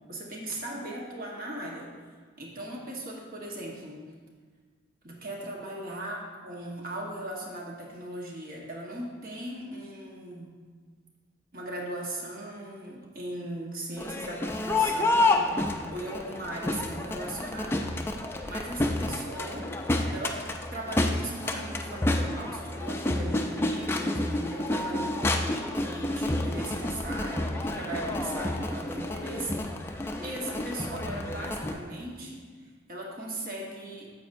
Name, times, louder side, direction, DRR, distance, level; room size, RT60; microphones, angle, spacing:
voice 1, 0.1-1.9 2.4-4.0 5.0-10.5 11.5-17.9 18.5-19.7 20.1-20.4 20.7-34.1, right 1 dB, 50° right, -2 dB, 1.3 m, -38 dB
Crowd, 14.0-31.7, left 2 dB, 10° left, 0.3 m, -29 dB
9.4 x 7.7 x 2.6 m, 1.5 s
head